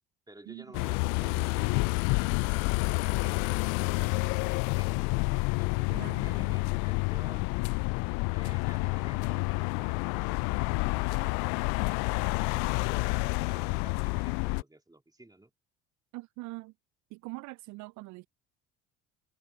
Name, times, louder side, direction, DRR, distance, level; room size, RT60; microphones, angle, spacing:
voice 1, 0.3-5.2 5.6-7.5 8.3-11.6 11.9-15.5, right 2 dB, 10° right, 3.1 m, -54 dB
sound 1, 0.7-14.6, left 33 dB, 60° left, 0.4 m, -29 dB
voice 2, 5.9-6.7 16.1-16.7 17.1-18.3, right 23 dB, 55° right, 0.4 m, -43 dB
hypercardioid pair, 60°, 36 cm